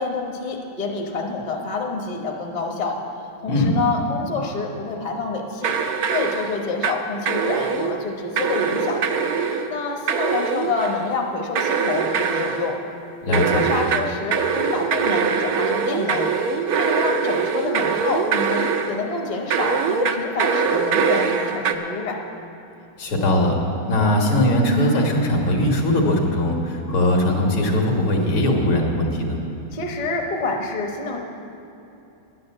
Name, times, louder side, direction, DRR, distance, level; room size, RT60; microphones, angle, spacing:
voice 1, 0.0-3.0 3.4-5.8 6.1-9.0 9.7-12.8 13.3-16.3 16.7-22.2 29.7-31.2, left 4 dB, 30° left, 1 dB, 0.8 m, -27 dB
voice 2, 3.4-3.8 13.2-13.7 23.0-23.6 23.9-29.4, left 1 dB, 75° left, 0 dB, 2.5 m, -20 dB
sound 1, 5.6-7.0 7.3-8.0 8.4-9.7 10.1-11.1 11.6-12.7 13.3-19.0 19.5-21.7, right 6 dB, 70° right, 0.9 m, -23 dB
10.5 x 9.7 x 7.6 m, 2.9 s
omnidirectional pair, 2.3 m